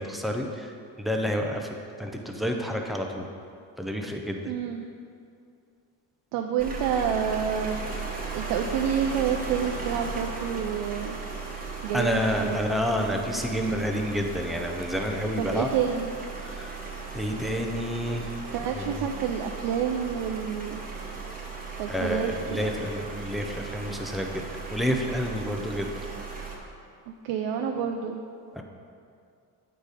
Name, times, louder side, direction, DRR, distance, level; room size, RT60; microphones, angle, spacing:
voice 1, 0.0-3.3 3.8-4.5 11.9-15.7 16.4-16.7 17.1-18.4 18.8-19.0 21.9-25.9 28.6-28.7, equal, ahead, 2 dB, 0.3 m, -29 dB
voice 2, 4.4-4.8 6.3-7.8 8.3-11.2 11.8-12.8 13.5-13.8 15.4-16.1 18.5-20.8 21.8-22.7 27.2-28.2, right 8 dB, 85° right, 3 dB, 0.6 m, -29 dB
sound 1, 6.6-26.6, right 4 dB, 20° right, 0.9 m, -37 dB
8.6 x 4.1 x 4.8 m, 2.4 s
cardioid pair, 145°, 41 cm